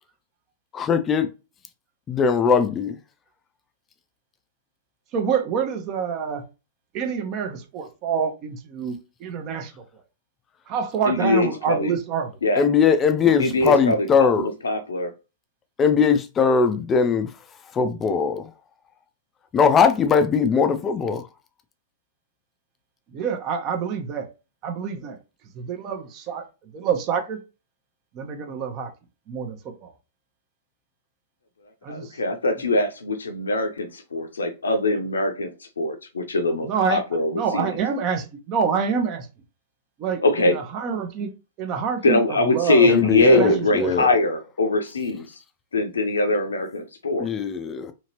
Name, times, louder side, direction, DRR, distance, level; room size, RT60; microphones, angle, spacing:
voice 1, 0.7-1.3 2.1-3.0 12.6-14.5 15.8-17.3 17.7-18.5 19.5-21.3 42.9-44.1 47.2-47.9, left 6 dB, 20° left, 0.4 m, -20 dB
voice 2, 5.1-6.4 6.9-9.8 10.7-12.3 13.2-13.3 23.1-24.3 24.6-25.2 25.5-26.5 26.7-27.4 28.1-28.9 29.3-29.9 31.8-32.2 36.6-37.1 37.3-39.3 40.0-41.3 41.6-42.9 43.2-43.9, right 6 dB, 35° right, 0.7 m, -27 dB
voice 3, 11.1-11.9 12.4-12.7 13.4-15.1 31.9-37.8 40.2-40.6 42.0-45.4 45.7-47.3, left 2 dB, 75° left, 0.6 m, -22 dB
2.8 x 2.8 x 2.8 m
figure-of-eight pair, 100°, 0 cm